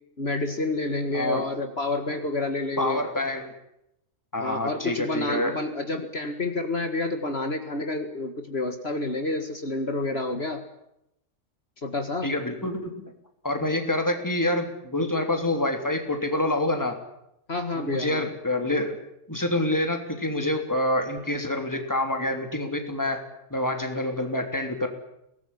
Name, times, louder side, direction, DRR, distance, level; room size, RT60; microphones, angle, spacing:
voice 1, 0.2-3.0 4.4-10.6 11.8-12.3 17.5-18.3, left 2 dB, 50° left, 6 dB, 2.2 m, -29 dB
voice 2, 1.1-1.4 2.8-3.5 4.3-5.6 12.2-13.1 13.4-17.0 17.7-19.0 19.3-24.9, left 1 dB, 15° left, 5 dB, 3.3 m, -27 dB
23.5 x 19.0 x 10.0 m, 0.82 s
omnidirectional pair, 1.3 m